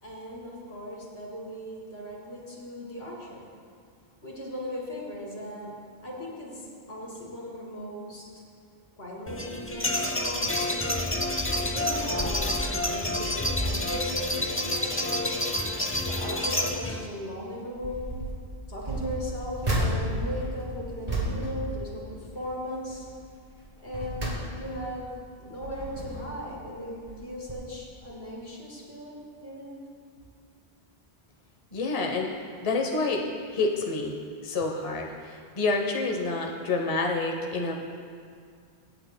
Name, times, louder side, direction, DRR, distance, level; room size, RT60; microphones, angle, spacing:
voice 1, 0.0-3.5 4.2-5.7 6.0-8.3 9.0-11.1 11.6-15.5 16.0-18.1 18.7-23.1 23.8-25.1 25.4-29.8, equal, 75° left, -3 dB, 2.6 m, -38 dB
sound 1, 9.3-17.1, left 1 dB, 15° left, 0.5 m, -28 dB
sound 2, 17.7-18.4 18.8-22.5 22.9-23.2 23.7-24.9 25.4-26.4 27.1-27.2 27.5-27.6, right 1 dB, 35° right, 2.4 m, -32 dB
voice 2, 31.7-32.3 32.6-34.2 34.4-37.7, left 3 dB, 35° left, 1 dB, 0.9 m, -28 dB
24.5 x 9.0 x 2.2 m, 2.2 s
omnidirectional pair, 1.1 m